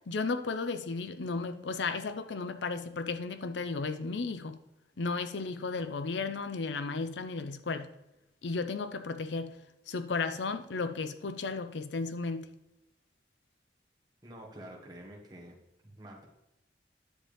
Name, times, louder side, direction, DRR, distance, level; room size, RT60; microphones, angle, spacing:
voice 1, 0.0-4.6 5.0-7.9 8.4-9.6 9.9-12.5, left 4 dB, 85° left, 0.6 m, -34 dB
voice 2, 14.2-15.5 15.8-16.3, right 1 dB, 25° right, 1.7 m, -48 dB
10.0 x 7.1 x 3.5 m
head